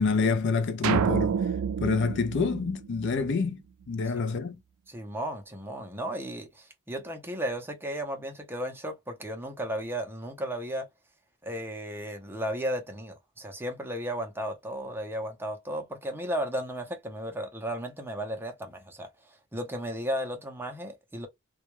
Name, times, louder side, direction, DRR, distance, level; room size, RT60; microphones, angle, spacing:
voice 1, 0.0-1.4 1.8-3.6 3.9-4.6, left 4 dB, 55° left, 0.4 m, -27 dB
sound 1, 0.8-3.4, right 7 dB, 75° right, 0.3 m, -28 dB
voice 2, 4.9-10.9 11.4-21.3, equal, 10° right, 0.6 m, -34 dB
2.2 x 2.1 x 2.9 m
head